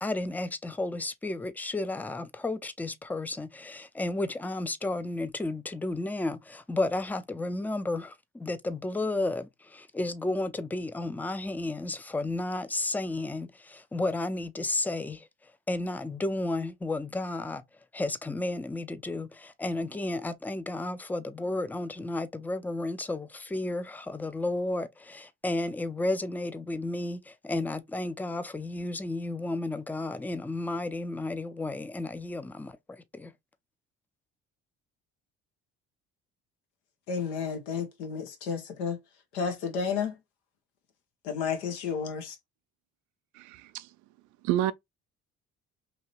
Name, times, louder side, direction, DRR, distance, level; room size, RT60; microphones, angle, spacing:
voice 1, 0.0-15.3 15.7-17.6 17.9-33.3, left 2 dB, 5° left, 0.4 m, -32 dB
voice 2, 37.1-39.0 39.3-40.2 41.2-42.4, left 6 dB, 85° left, 0.9 m, -31 dB
voice 3, 43.4-43.9 44.4-44.7, right 13 dB, 65° right, 0.5 m, -29 dB
2.8 x 2.8 x 3.0 m
hypercardioid pair, 65°, 32 cm